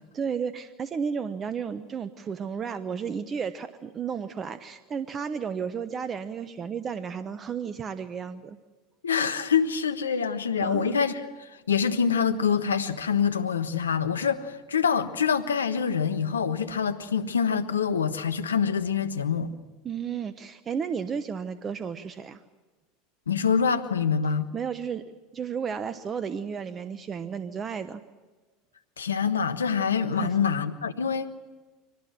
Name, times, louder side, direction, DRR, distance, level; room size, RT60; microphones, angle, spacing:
voice 1, 0.1-8.6 10.6-11.0 19.8-22.4 24.5-25.0 25.3-28.0 30.2-30.3, right 6 dB, 30° right, 1.0 m, -33 dB
voice 2, 9.0-19.5 23.3-24.5 29.0-31.4, left 6 dB, 90° left, 1.2 m, -25 dB
24.0 x 18.5 x 7.6 m
hypercardioid pair, 85°, 0 cm